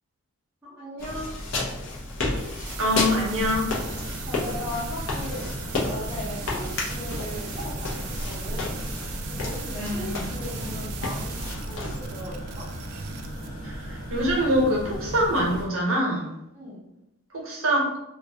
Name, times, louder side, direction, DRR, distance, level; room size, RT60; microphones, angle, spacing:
voice 1, 0.6-1.4 4.3-8.8 9.3-11.4 11.6-12.7 16.5-16.9, left 1 dB, 10° right, -10 dB, 0.6 m, -38 dB
sound 1, 1.0-12.0, left 2 dB, 55° left, 0.5 m, -32 dB
sound 2, 2.4-13.5, right 8 dB, 90° right, 0.3 m, -41 dB
voice 2, 2.8-3.7 9.8-10.3 13.6-16.3 17.3-17.9, equal, 60° right, -2 dB, 0.7 m, -24 dB
sound 3, 3.3-15.7, right 1 dB, 80° left, 1.3 m, -36 dB
2.2 x 2.2 x 2.7 m, 0.89 s
head